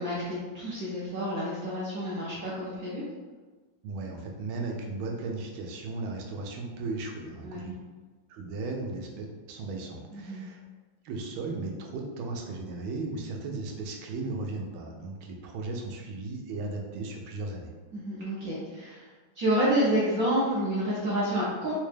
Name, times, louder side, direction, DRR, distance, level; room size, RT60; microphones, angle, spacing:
voice 1, 0.0-3.0 7.4-7.7 10.1-10.4 17.9-19.0 19.4-21.8, equal, 65° right, -7 dB, 0.9 m, -29 dB
voice 2, 3.8-7.7 8.3-10.6 11.0-17.7, right 3 dB, 85° right, 1 dB, 1.4 m, -36 dB
3.9 x 2.2 x 3.2 m, 1.3 s
omnidirectional pair, 2.2 m